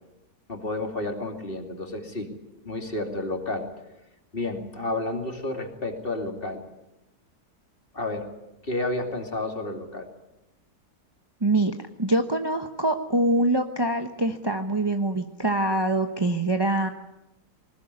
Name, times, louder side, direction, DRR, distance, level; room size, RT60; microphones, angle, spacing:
voice 1, 0.5-2.3 2.6-3.6 4.3-6.6 7.9-8.3 8.6-10.1, left 2 dB, 35° left, 4 dB, 3.0 m, -31 dB
voice 2, 11.4-11.7 12.0-16.9, right 1 dB, 20° right, 5 dB, 1.0 m, -24 dB
20.5 x 19.5 x 9.7 m, 0.93 s
omnidirectional pair, 1.7 m